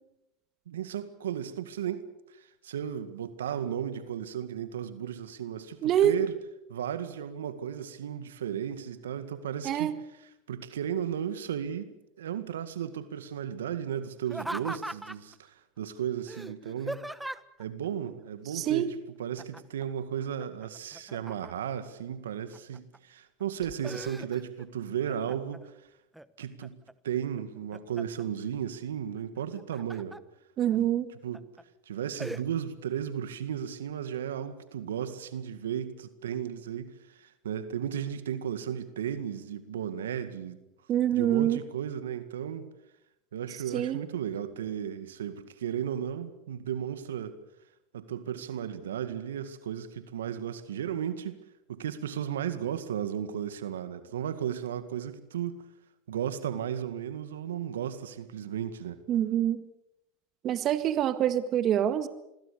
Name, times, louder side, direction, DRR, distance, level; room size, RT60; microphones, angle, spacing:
voice 1, 0.7-2.1 2.3-6.3 6.7-9.9 10.5-17.1 17.6-25.7 26.4-26.8 27.0-30.2 30.7-30.9 31.2-31.4 31.9-40.6 41.1-42.7 43.3-47.4 47.9-51.4 51.7-55.7 56.1-59.0, right 9 dB, 85° right, 2.0 m, -35 dB
voice 2, 5.8-6.2 9.6-10.0 18.5-18.9 30.6-31.1 40.9-41.6 43.7-44.0 59.1-59.6 60.4-62.1, right 11 dB, 45° right, 1.8 m, -25 dB
Laughter, 14.2-15.4 16.3-17.6 19.4-19.8 20.2-21.8 22.3-23.0 23.4-24.7 25.1-25.6 26.1-26.9 27.4-28.2 29.4-30.2 30.7-30.8 31.3-31.6 32.2-32.4, right 1 dB, 5° right, 1.2 m, -40 dB
27.5 x 21.5 x 6.8 m
hypercardioid pair, 95°, 0 cm